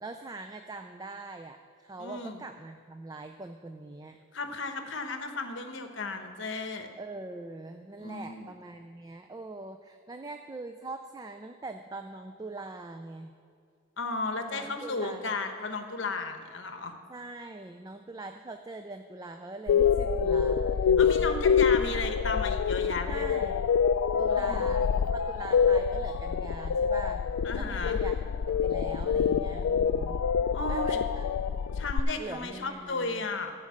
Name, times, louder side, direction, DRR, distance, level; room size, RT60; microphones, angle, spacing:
voice 1, 0.0-4.2 7.0-13.3 14.5-15.3 17.1-21.2 21.8-21.9 23.1-23.6 24.2-27.3 27.5-28.2 28.5-30.2 30.7-31.3 32.2-33.2, right 2 dB, 15° right, 6 dB, 0.3 m, -42 dB
voice 2, 2.0-2.4 4.3-6.9 8.0-8.5 14.0-16.9 21.0-23.3 24.3-24.6 27.4-28.0 30.5-31.0 31.7-33.5, left 3 dB, 60° left, 6 dB, 1.0 m, -34 dB
sound 1, 19.7-32.0, left 6 dB, 85° left, 0.3 m, -26 dB
14.5 x 5.2 x 7.4 m, 2.3 s
head